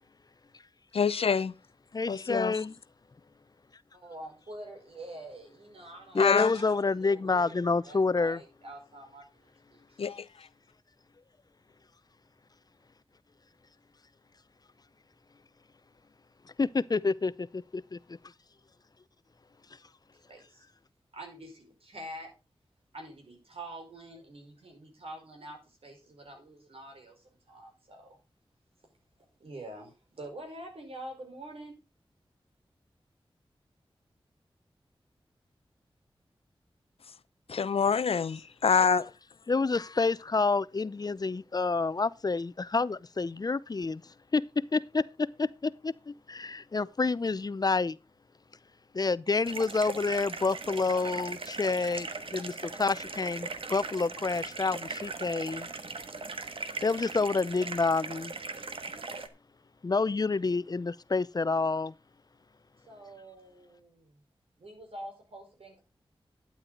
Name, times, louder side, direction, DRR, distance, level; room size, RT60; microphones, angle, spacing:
voice 1, 0.9-1.5 2.1-2.6 6.2-6.5 10.0-10.5 37.5-39.1, left 6 dB, 85° left, 0.6 m, -26 dB
voice 2, 1.9-2.7 6.1-8.4 16.6-18.0 39.5-44.0 44.3-48.0 48.9-52.1 52.3-55.7 56.8-58.3 59.8-61.9, left 4 dB, 45° left, 0.6 m, -28 dB
voice 3, 3.9-10.0 20.3-20.6 21.1-22.3 22.9-28.2 29.4-31.8 62.9-64.2 64.6-65.8, right 1 dB, 85° right, 5.2 m, -46 dB
sound 1, 49.4-59.3, right 3 dB, 70° right, 1.4 m, -39 dB
12.0 x 9.5 x 3.8 m
wide cardioid pair, 100°, 10 cm